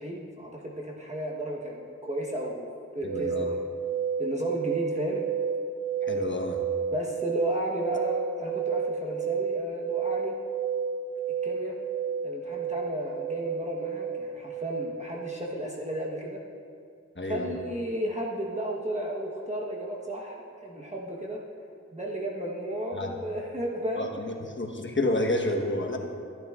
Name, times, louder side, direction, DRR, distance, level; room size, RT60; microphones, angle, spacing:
voice 1, 0.0-2.7 2.9-3.4 4.2-5.2 6.9-10.4 11.4-11.8 12.2-16.4 17.3-21.4 21.9-24.1, right 1 dB, 25° right, -3 dB, 1.1 m, -33 dB
voice 2, 3.0-3.5 6.0-6.6 17.1-17.6 22.9-23.1 24.0-26.0, left 1 dB, 40° left, 2 dB, 1.2 m, -30 dB
sound 1, 3.1-15.4, right 6 dB, 85° right, 1.3 m, -31 dB
14.5 x 10.5 x 2.4 m, 2.4 s
wide cardioid pair, 45°, 29 cm